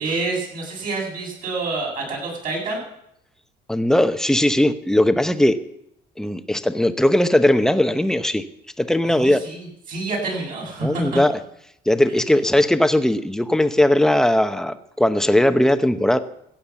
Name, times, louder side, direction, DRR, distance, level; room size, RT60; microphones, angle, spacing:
voice 1, 0.0-2.8 9.1-11.2, right 3 dB, 55° right, -2 dB, 7.9 m, -27 dB
voice 2, 3.7-5.6 6.2-8.4 8.8-9.4 10.8-11.3 11.9-16.2, left 1 dB, 5° left, 10 dB, 0.9 m, -18 dB
15.5 x 8.7 x 7.3 m, 0.78 s
cardioid pair, 110°, 17 cm